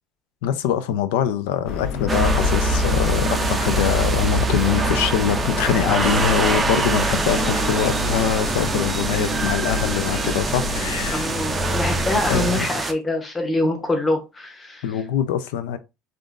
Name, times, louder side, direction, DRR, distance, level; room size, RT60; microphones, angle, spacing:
voice 1, 0.4-11.3 12.3-12.7 14.8-15.8, left 9 dB, 85° left, 0.4 m, -23 dB
sound 1, 1.6-12.3, left 4 dB, 55° left, 0.8 m, -28 dB
sound 2, 2.1-12.9, right 4 dB, 15° right, 0.4 m, -24 dB
voice 2, 11.1-14.8, left 1 dB, 15° left, 0.8 m, -24 dB
3.6 x 2.5 x 2.4 m
cardioid pair, 140°, 0 cm